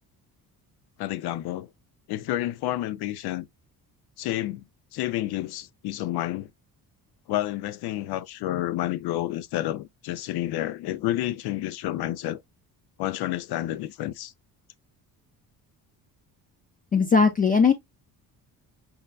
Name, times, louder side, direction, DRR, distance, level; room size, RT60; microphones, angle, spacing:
voice 1, 1.0-1.7 2.1-3.5 4.2-4.6 4.9-6.5 7.3-12.4 13.0-14.3, left 14 dB, 90° left, 0.5 m, -30 dB
voice 2, 16.9-17.7, left 5 dB, 25° left, 0.3 m, -19 dB
5.5 x 2.2 x 2.2 m
cardioid pair, 175°, 37 cm